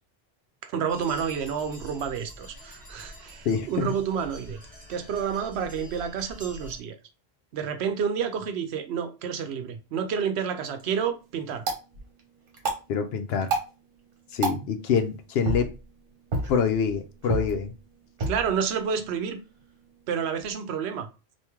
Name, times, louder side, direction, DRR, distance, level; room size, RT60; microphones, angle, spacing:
voice 1, 0.6-4.6 4.9-6.9 7.5-11.6 18.3-19.4 20.1-21.1, right 7 dB, 85° right, 0.9 m, -29 dB
sound 1, 0.9-6.8, equal, 10° right, 1.4 m, -46 dB
voice 2, 3.4-3.9 12.9-13.5 14.3-15.7 16.5-17.7, left 6 dB, 75° left, 0.8 m, -26 dB
sound 2, 10.5-20.5, right 2 dB, 55° right, 1.1 m, -34 dB
3.4 x 2.6 x 2.9 m
omnidirectional pair, 1.1 m